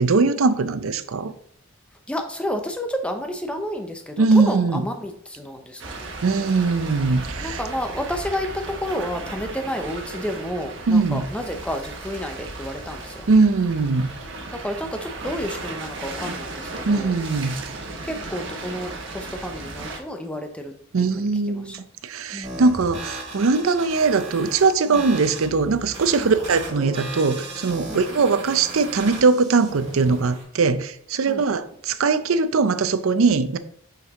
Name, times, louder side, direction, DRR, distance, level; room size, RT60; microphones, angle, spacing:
voice 1, 0.0-1.3 4.2-4.9 6.2-7.6 10.9-11.3 13.3-14.1 16.9-17.6 20.9-33.6, right 4 dB, 80° right, 0.5 m, -21 dB
voice 2, 2.1-6.1 7.4-13.3 14.5-17.2 18.0-20.7 21.0-21.8 22.3-22.6 24.9-25.0 26.2-26.3 27.9-28.0 31.3-31.4, equal, 5° left, 0.7 m, -31 dB
sound 1, 5.8-20.0, right 2 dB, 60° right, 1.2 m, -35 dB
sound 2, 22.4-30.4, right 2 dB, 30° right, 2.2 m, -36 dB
6.1 x 5.7 x 3.6 m
head